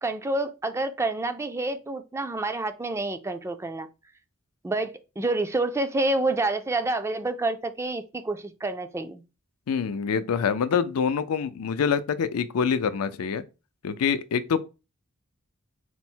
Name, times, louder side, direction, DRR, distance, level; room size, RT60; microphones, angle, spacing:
voice 1, 0.0-3.9 4.6-9.2, right 2 dB, 10° right, 0.3 m, -28 dB
voice 2, 9.7-13.4 13.8-14.6, left 6 dB, 80° left, 0.4 m, -25 dB
4.3 x 2.0 x 4.3 m
head